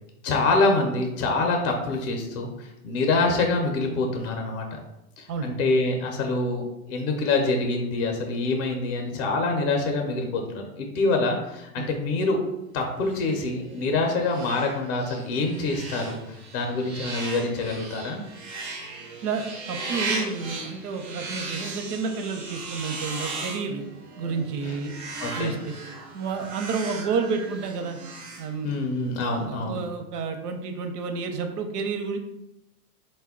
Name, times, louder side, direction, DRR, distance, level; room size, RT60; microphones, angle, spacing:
voice 1, 0.2-4.6 5.2-12.4 12.7-18.2 24.6-24.8 25.2-25.6 28.6-29.8, left 3 dB, 40° left, 3 dB, 0.5 m, -26 dB
sound 1, 13.1-29.0, right 3 dB, 30° right, 0.4 m, -37 dB
voice 2, 19.2-23.8 24.2-24.9 25.3-25.6 26.1-28.0 28.4-28.7 29.4-32.2, right 4 dB, 85° right, 5 dB, 0.7 m, -30 dB
4.1 x 2.2 x 3.6 m, 0.89 s
supercardioid pair, 155°, 46 cm